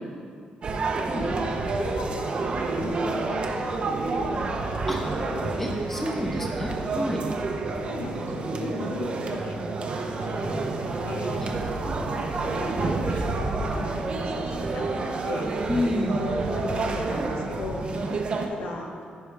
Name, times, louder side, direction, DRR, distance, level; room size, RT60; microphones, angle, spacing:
sound 1, 0.6-18.5, right 3 dB, 40° right, 0.7 m, -29 dB
voice 1, 1.7-5.0 5.3-5.6 7.8-9.7 10.0-15.5 16.1-17.9 18.5-18.9, left 2 dB, 75° left, 0 dB, 1.2 m, -37 dB
voice 2, 5.6-7.2 8.5-8.8 11.4-11.5 12.6-12.9 15.7-16.2 17.9-18.0, left 1 dB, 10° left, -1 dB, 1.2 m, -29 dB
15.0 x 5.4 x 3.5 m, 2.2 s
cardioid pair, 145°, 3 cm